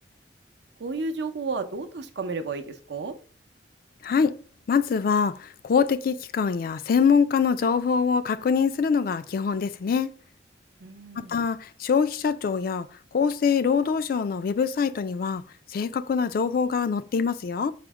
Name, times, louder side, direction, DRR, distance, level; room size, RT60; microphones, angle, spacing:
voice 1, 0.8-3.1 10.8-11.3, right 4 dB, 65° right, 0.6 m, -32 dB
voice 2, 4.0-4.3 4.7-10.1 11.2-15.4 15.7-17.7, left 6 dB, 55° left, 0.3 m, -24 dB
5.0 x 2.1 x 4.5 m
head